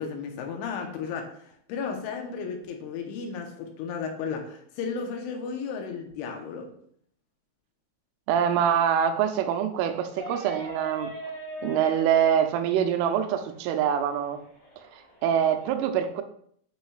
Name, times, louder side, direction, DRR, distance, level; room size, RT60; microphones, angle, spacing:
voice 1, 0.0-6.7, left 5 dB, 80° left, 3 dB, 3.4 m, -34 dB
voice 2, 8.3-11.2 11.6-14.4 14.9-16.2, right 9 dB, 90° right, 7 dB, 3.2 m, -25 dB
sound 1, 10.0-15.7, equal, 50° left, 5.0 m, -41 dB
11.0 x 5.6 x 2.4 m, 0.65 s
omnidirectional pair, 5.6 m